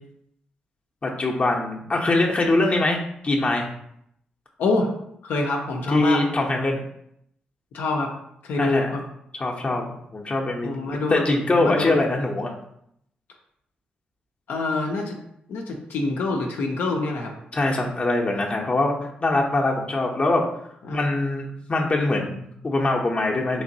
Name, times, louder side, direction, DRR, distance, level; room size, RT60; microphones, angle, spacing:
voice 1, 1.0-3.7 5.9-6.8 8.6-8.9 9.3-12.5 17.5-18.9 19.2-20.4 20.9-23.6, left 2 dB, 35° left, -1 dB, 0.7 m, -23 dB
voice 2, 5.2-6.2 7.7-8.1 8.4-9.0 10.6-11.2 11.6-12.0 14.5-15.2 15.5-17.3 20.9-21.1, left 3 dB, 75° left, 1 dB, 0.5 m, -26 dB
3.3 x 2.9 x 2.7 m, 0.74 s
supercardioid pair, 50°, 4 cm